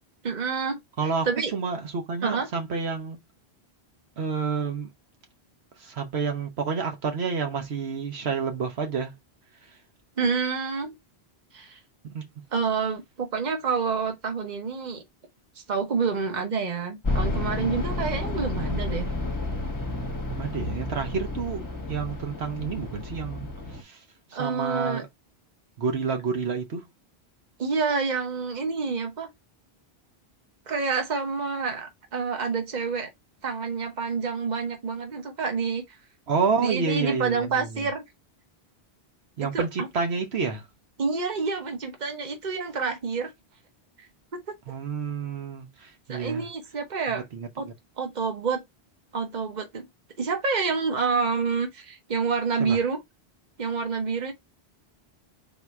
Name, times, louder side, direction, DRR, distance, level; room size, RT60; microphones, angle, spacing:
voice 1, 0.2-0.8 1.2-1.5 2.2-2.5 10.2-10.9 11.5-11.8 12.5-15.0 15.7-19.1 24.3-25.0 27.6-29.3 30.7-33.1 33.4-36.0 36.6-38.0 39.4-39.6 41.0-43.3 44.3-44.5 46.1-47.2 47.6-47.7 48.0-48.6 49.1-49.8 50.2-53.0 53.6-54.3, right 5 dB, 45° right, 1.1 m, -28 dB
voice 2, 1.0-3.2 4.2-4.9 5.8-9.1 12.1-12.2 20.3-24.0 24.3-25.1 25.8-26.9 36.3-37.9 39.4-40.7 44.7-46.5 47.1-47.7 52.6-52.8, right 5 dB, 80° right, 1.2 m, -29 dB
sound 1, 17.0-23.8, left 2 dB, 20° left, 0.9 m, -31 dB
4.0 x 2.8 x 4.6 m
omnidirectional pair, 1.1 m